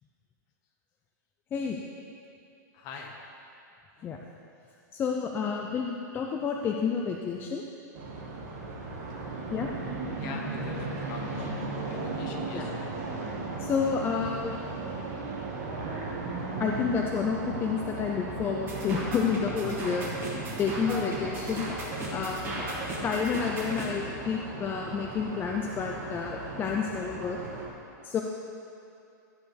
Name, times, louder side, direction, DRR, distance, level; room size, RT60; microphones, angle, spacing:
voice 1, 2.7-3.1 4.0-4.1 10.2-11.5 11.9-12.7, left 4 dB, 40° left, 1 dB, 1.4 m, -42 dB
voice 2, 4.9-7.6 9.5-9.7 12.5-12.7 13.6-14.6 16.6-20.0 20.6-21.7 22.1-22.5 23.0-27.4 28.0-28.2, left 6 dB, 20° left, 1 dB, 0.5 m, -30 dB
sound 1, 7.9-27.7, right 3 dB, 45° right, 1.9 m, -37 dB
sound 2, 18.7-23.9, right 1 dB, 25° right, 2.3 m, -36 dB
14.0 x 9.3 x 3.3 m, 2.6 s
hypercardioid pair, 145°, 10 cm